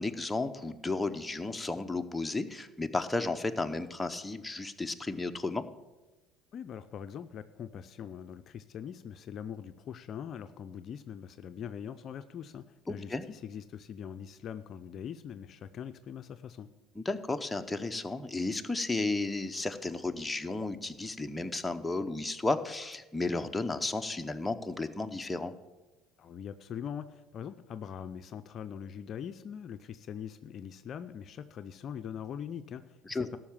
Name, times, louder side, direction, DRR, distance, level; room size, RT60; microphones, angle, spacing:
voice 1, 0.0-5.6 12.9-13.2 17.0-25.5 33.1-33.4, left 2 dB, 10° left, 7 dB, 0.8 m, -33 dB
voice 2, 6.5-16.7 26.2-33.4, left 8 dB, 50° left, 10 dB, 0.5 m, -42 dB
13.0 x 5.9 x 7.2 m, 1.1 s
hypercardioid pair, 75°, 0 cm